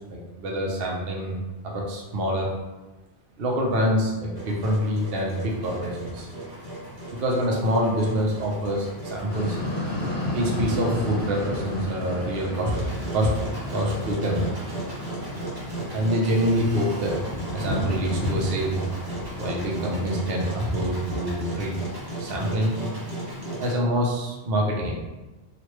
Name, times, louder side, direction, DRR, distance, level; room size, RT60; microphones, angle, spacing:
voice 1, 0.1-1.4 1.6-2.5 3.4-6.3 7.1-9.6 10.3-12.8 13.1-13.3 13.7-14.5 15.9-17.2 17.5-18.8 19.4-21.7 22.2-22.7 23.6-24.9, equal, 65° right, -2 dB, 0.8 m, -25 dB
Engine, 4.4-23.7, right 1 dB, 25° right, 0.7 m, -36 dB
sound 1, 9.3-20.6, left 1 dB, 50° left, 0.8 m, -33 dB
3.0 x 2.4 x 3.1 m, 1.1 s
omnidirectional pair, 1.1 m